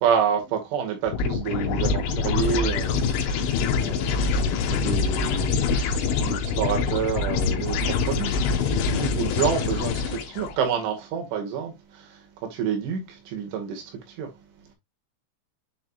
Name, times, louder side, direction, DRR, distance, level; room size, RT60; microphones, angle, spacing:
voice 1, 0.0-12.2 12.5-14.3, right 7 dB, 85° right, 4.4 m, -29 dB
sound 1, 1.1-10.5, left 5 dB, 80° left, 3.5 m, -25 dB
10.0 x 4.9 x 2.4 m
omnidirectional pair, 5.4 m